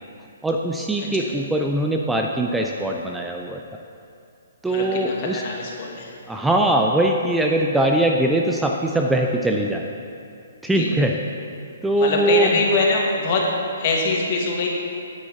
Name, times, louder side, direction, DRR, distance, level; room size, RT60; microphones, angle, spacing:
voice 1, 0.4-3.8 4.6-5.4 6.3-9.9 10.6-11.1 11.8-12.6, right 1 dB, 5° right, 1 dB, 0.4 m, -21 dB
voice 2, 1.0-1.3 4.7-6.1 10.7-10.9 12.0-13.5 13.8-14.7, left 3 dB, 45° left, -1 dB, 1.6 m, -23 dB
9.5 x 9.4 x 2.9 m, 2.5 s
figure-of-eight pair, 130°, 0 cm